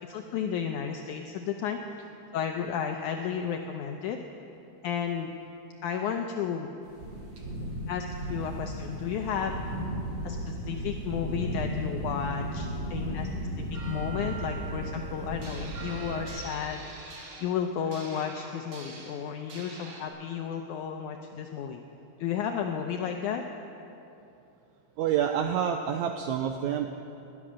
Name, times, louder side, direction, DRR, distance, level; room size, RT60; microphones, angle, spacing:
voice 1, 0.0-4.2 4.8-5.3 5.8-6.7 7.9-9.6 10.2-13.3 13.6-16.8 17.4-21.8 22.2-23.4, left 7 dB, 75° left, 4 dB, 1.9 m, -33 dB
sound 1, 6.9-16.3, right 1 dB, 70° right, 5.0 m, -35 dB
sound 2, 15.4-20.1, right 3 dB, 50° right, 2.3 m, -46 dB
voice 2, 25.0-26.9, right 8 dB, 85° right, 5 dB, 1.6 m, -27 dB
20.0 x 11.0 x 6.2 m, 2.8 s
omnidirectional pair, 4.0 m